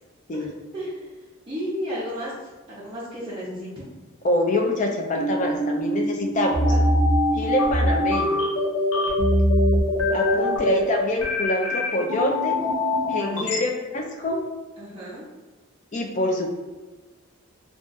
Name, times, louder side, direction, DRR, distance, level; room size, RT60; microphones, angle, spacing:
voice 1, 0.7-1.1 1.5-3.8 6.7-6.8 10.1-10.4 13.1-13.6 14.8-15.2, equal, 25° right, -10 dB, 0.6 m, -33 dB
voice 2, 4.2-6.7 7.3-8.4 10.1-12.6 13.1-14.4 15.9-16.5, left 1 dB, 35° left, 1 dB, 0.4 m, -25 dB
sound 1, 5.2-13.6, left 1 dB, 80° left, 0.7 m, -22 dB
2.4 x 2.4 x 3.9 m, 1.2 s
head